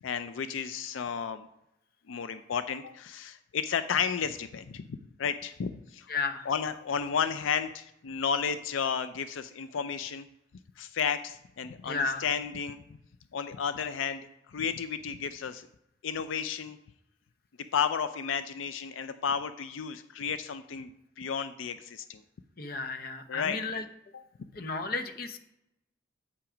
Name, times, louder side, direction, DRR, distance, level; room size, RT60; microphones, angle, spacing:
voice 1, 0.0-1.5 2.1-6.1 6.5-10.3 10.8-12.8 13.3-15.7 16.0-16.8 17.7-22.2 23.3-23.6, left 7 dB, 90° left, 11 dB, 0.4 m, -32 dB
voice 2, 6.1-6.5 11.8-12.3 22.6-23.8 24.5-25.4, left 4 dB, 50° left, 8 dB, 0.7 m, -33 dB
8.1 x 5.8 x 5.0 m, 0.84 s
head